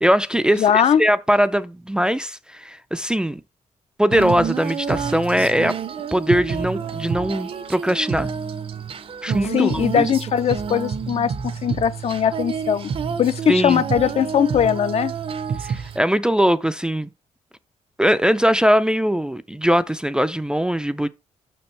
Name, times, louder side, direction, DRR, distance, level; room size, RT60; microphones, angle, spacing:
voice 1, 0.0-3.4 4.0-5.8 6.1-8.3 9.2-10.1 13.5-13.8 15.6-17.1 18.0-21.1, equal, 5° right, 0.4 m, -21 dB
voice 2, 0.6-1.0 9.5-12.9 13.2-15.1, left 8 dB, 55° left, 0.5 m, -20 dB
Female singing, 4.1-16.0, right 6 dB, 45° right, 0.6 m, -28 dB
7.0 x 6.1 x 3.2 m
cardioid pair, 125°, 13 cm